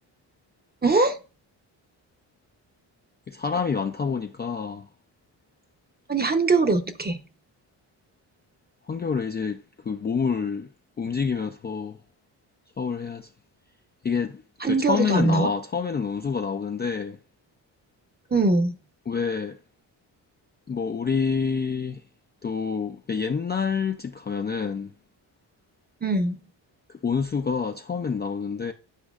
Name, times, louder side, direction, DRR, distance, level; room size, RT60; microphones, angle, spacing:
voice 1, 0.8-1.2 6.1-7.2 14.6-15.5 18.3-18.8 26.0-26.4, right 3 dB, 20° right, 0.7 m, -22 dB
voice 2, 3.3-4.9 8.9-10.7 11.0-12.0 12.8-13.3 14.0-14.4 14.7-17.2 19.1-19.6 20.7-22.0 22.4-24.9 27.0-28.7, left 5 dB, 25° left, 0.4 m, -27 dB
8.3 x 4.8 x 2.4 m
cardioid pair, 65°, 45 cm